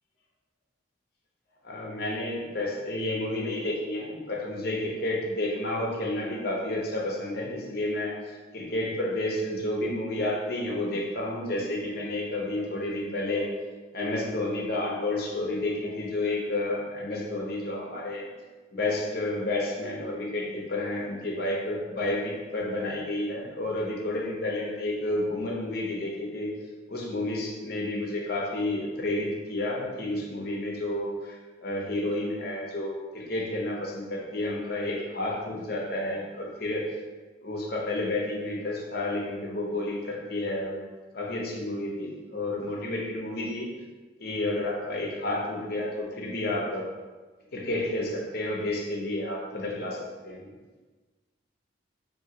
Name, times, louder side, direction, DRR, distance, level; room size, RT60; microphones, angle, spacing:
voice 1, 1.6-13.5 13.9-18.3 18.7-26.6 26.9-36.9 37.4-43.7 44.2-46.8 47.5-50.5, left 1 dB, 50° left, -2 dB, 0.8 m, -31 dB
6.1 x 2.7 x 2.8 m, 1.3 s
head